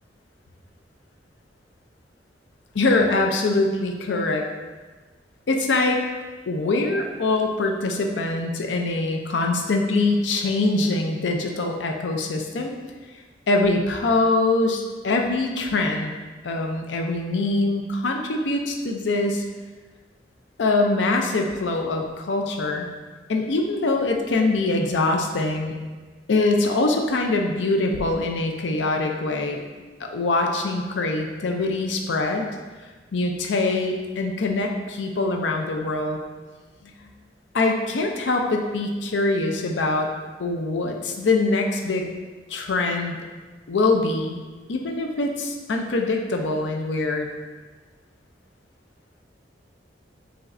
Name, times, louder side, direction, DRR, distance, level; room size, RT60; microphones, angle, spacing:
voice 1, 2.7-4.5 5.5-6.0 6.5-12.7 13.5-16.1 16.4-19.4 20.6-22.9 23.3-25.7 26.3-29.6 30.0-32.5 33.1-36.2 36.8-36.9 37.5-40.1 40.4-42.1 42.5-43.2 43.7-44.4 44.7-47.3, left 2 dB, 85° left, 2 dB, 0.5 m, -23 dB
5.1 x 3.1 x 2.6 m, 1.3 s
head